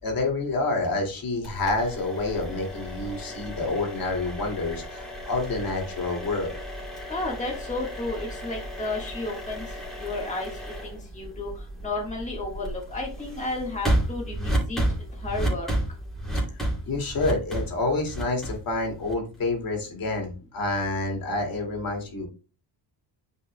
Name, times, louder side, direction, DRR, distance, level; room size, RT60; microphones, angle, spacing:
voice 1, 0.0-6.6 16.3-16.4 16.9-22.3, left 2 dB, 55° left, 2 dB, 2.4 m, -28 dB
sound 1, 1.4-19.4, right 1 dB, ahead, 2.8 m, -32 dB
voice 2, 7.1-9.6 9.9-14.8 15.1-15.7, left 2 dB, 15° left, -1 dB, 1.6 m, -32 dB
9.5 x 5.4 x 2.2 m, 0.34 s
cardioid pair, 140°, 42 cm